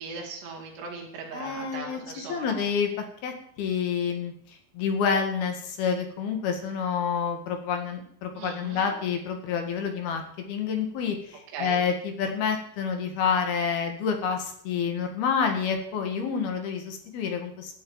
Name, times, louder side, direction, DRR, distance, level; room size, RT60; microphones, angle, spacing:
voice 1, 0.0-2.7 8.3-8.9 11.5-11.8, right 4 dB, 70° right, -1 dB, 4.8 m, -39 dB
voice 2, 1.3-2.9 3.2-4.3 4.8-17.8, left 6 dB, 65° left, 5 dB, 3.7 m, -28 dB
16.5 x 8.4 x 7.3 m, 0.64 s
omnidirectional pair, 5.2 m